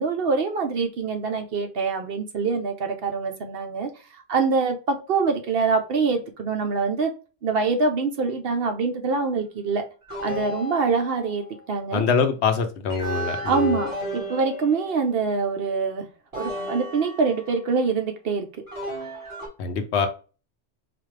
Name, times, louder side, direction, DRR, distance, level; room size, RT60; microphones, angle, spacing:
voice 1, 0.0-3.9 4.3-7.1 7.4-9.9 10.2-12.0 13.5-16.1 16.4-18.5, right 4 dB, 60° right, 0.7 m, -25 dB
sound 1, 10.1-11.5 12.9-15.3 16.3-17.7 18.7-19.5, left 1 dB, 25° right, 2.0 m, -33 dB
voice 2, 11.9-13.7 19.6-20.1, left 5 dB, 65° left, 0.9 m, -24 dB
4.2 x 2.4 x 3.2 m
omnidirectional pair, 1.3 m